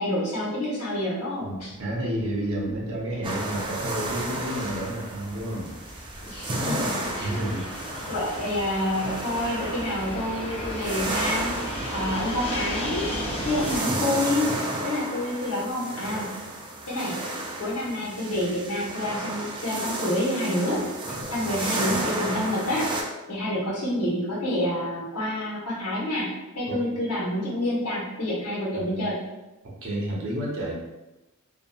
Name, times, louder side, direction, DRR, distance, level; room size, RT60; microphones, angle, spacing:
voice 1, 0.0-1.7 2.7-2.9 6.2-6.9 7.2-7.5 8.1-11.5 11.9-13.1 13.4-14.5 14.8-16.3 16.9-17.2 17.6-20.8 21.3-22.9 23.3-26.3 26.5-29.2, left 1 dB, 85° left, -7 dB, 1.0 m, -28 dB
voice 2, 1.4-5.7 6.6-6.9 7.2-7.7 26.7-26.8 28.7-29.1 29.8-30.7, right 1 dB, 65° right, -3 dB, 0.7 m, -31 dB
Fixed-wing aircraft airplane, 1.6-13.8, equal, 25° left, 0.7 m, -35 dB
sound 1, 3.2-23.0, right 2 dB, 20° right, 0.3 m, -33 dB
2.8 x 2.3 x 2.2 m, 1.0 s
head